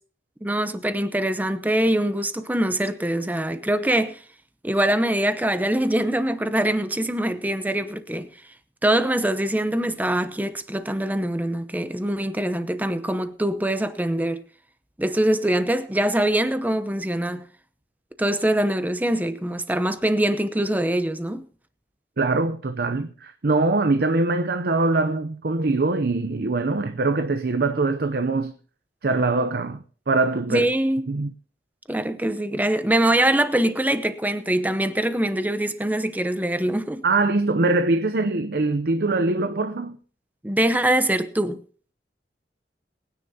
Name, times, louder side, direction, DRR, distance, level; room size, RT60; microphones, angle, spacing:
voice 1, 0.4-4.2 4.6-8.3 8.8-14.4 15.0-17.5 18.2-21.4 30.5-31.0 31.9-37.0 40.4-41.6, right 1 dB, 10° right, 0.8 m, -23 dB
voice 2, 22.2-28.5 29.0-30.7 31.1-31.3 37.0-40.0, right 3 dB, 60° right, 0.7 m, -23 dB
22.0 x 9.9 x 2.8 m
head